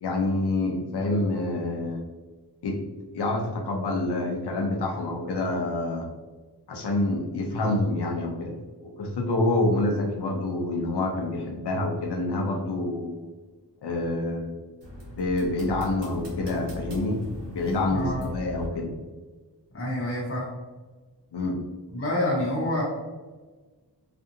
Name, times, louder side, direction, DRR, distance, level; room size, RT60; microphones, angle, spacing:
voice 1, 0.0-2.0 2.6-2.8 3.1-6.1 6.7-8.5 8.8-13.3 13.8-14.6 15.1-17.2 17.5-18.9 21.3-21.6, left 2 dB, 75° left, 1 dB, 0.6 m, -27 dB
sound 1, 14.8-18.7, left 1 dB, 80° right, 1.1 m, -38 dB
voice 2, 19.7-20.5 21.9-22.8, left 1 dB, 30° left, -5 dB, 0.7 m, -27 dB
2.6 x 2.4 x 2.6 m, 1.3 s
wide cardioid pair, 100°, 41 cm